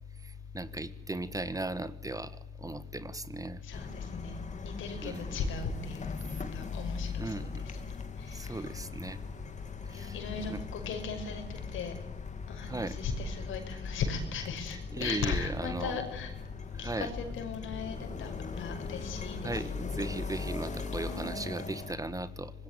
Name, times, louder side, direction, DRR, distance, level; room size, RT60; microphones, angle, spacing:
voice 1, 0.2-2.3 2.6-3.6 5.0-5.2 7.2-7.5 8.3-9.2 9.9-10.1 10.5-10.6 12.7-13.0 14.9-16.0 16.7-17.1 19.4-22.5, right 2 dB, 15° right, 14 dB, 1.5 m, -37 dB
voice 2, 3.6-7.5 8.3-8.4 9.9-11.9 12.5-16.3 16.8-20.1 21.1-21.4, left 5 dB, 80° left, 6 dB, 6.0 m, -37 dB
sound 1, 3.7-21.9, left 4 dB, 35° left, 3.2 m, -40 dB
25.0 x 20.5 x 9.2 m, 0.81 s
cardioid pair, 90°, 20 cm